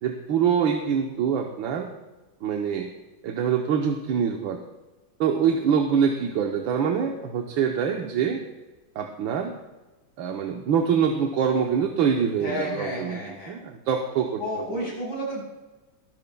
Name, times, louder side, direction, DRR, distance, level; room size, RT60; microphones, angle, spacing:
voice 1, 0.0-1.9 2.4-2.9 3.2-4.6 5.2-8.4 8.9-9.5 10.2-14.9, right 7 dB, 75° right, 2 dB, 1.7 m, -25 dB
voice 2, 12.4-13.5 14.4-15.4, equal, 80° left, -3 dB, 5.9 m, -31 dB
22.5 x 12.0 x 2.3 m, 1.1 s
omnidirectional pair, 2.2 m